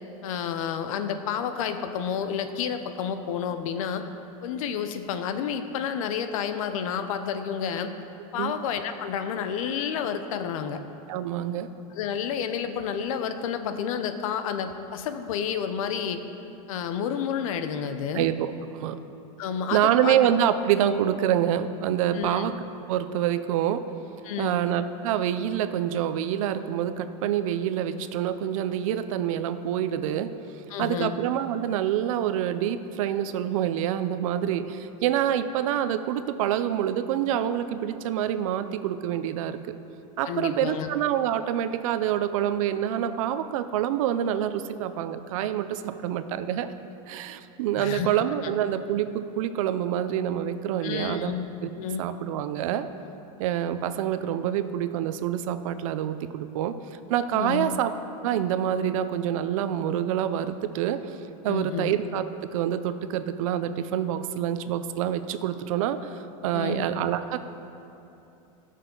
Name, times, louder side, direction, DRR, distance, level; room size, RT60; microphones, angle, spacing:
voice 1, 0.2-4.0 4.4-7.9 8.3-10.8 12.0-16.2 16.7-18.3 19.4-20.2 22.1-22.4 24.2-24.6 30.7-31.2 40.2-40.9 47.7-48.1 48.4-48.5 50.8-51.5 51.8-52.0 57.3-57.8 61.5-61.9 66.5-66.9, left 7 dB, 75° left, 9 dB, 0.8 m, -30 dB
voice 2, 11.1-11.7 18.1-19.0 19.7-22.6 22.9-23.9 24.4-30.3 30.8-39.8 40.2-46.7 47.1-51.4 51.6-51.7 52.0-52.9 53.4-56.7 57.1-57.9 58.2-61.2 61.4-67.4, right 10 dB, 70° right, 11 dB, 0.6 m, -26 dB
16.0 x 6.5 x 3.9 m, 2.8 s
supercardioid pair, 135°, 18 cm